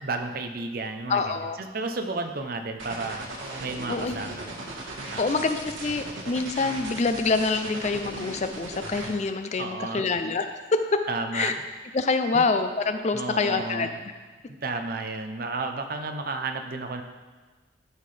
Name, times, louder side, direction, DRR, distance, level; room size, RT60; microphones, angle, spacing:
voice 1, 0.0-1.2 1.6-3.3 3.6-4.5 5.1-5.5 9.6-10.0 11.1-11.6 12.3-12.4 13.1-14.0 14.6-17.0, right 3 dB, 45° right, 6 dB, 0.6 m, -32 dB
voice 2, 1.1-1.6 3.9-4.2 5.2-10.5 10.7-11.0 11.3-11.5 11.9-13.9, left 3 dB, 35° left, 8 dB, 0.4 m, -26 dB
sound 1, 2.8-9.1, right 2 dB, 85° right, 1.4 m, -37 dB
12.5 x 5.6 x 3.3 m, 1.4 s
head